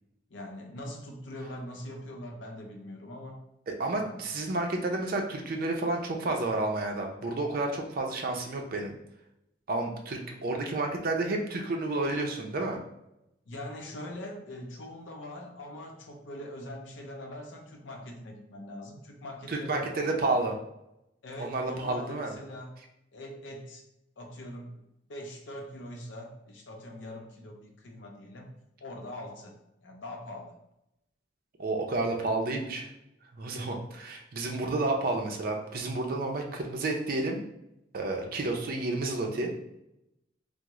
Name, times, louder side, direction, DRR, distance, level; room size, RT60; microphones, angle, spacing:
voice 1, 0.3-3.4 4.0-4.2 13.5-20.4 21.2-22.8 23.1-23.8 24.2-28.5 28.8-30.6, left 1 dB, 85° left, 1 dB, 0.6 m, -42 dB
voice 2, 3.7-8.9 9.7-12.8 19.5-20.6 21.4-22.3 31.6-32.9 33.3-37.4 37.9-39.5, right 2 dB, 50° right, 2 dB, 0.5 m, -30 dB
3.5 x 2.0 x 3.0 m, 0.85 s
head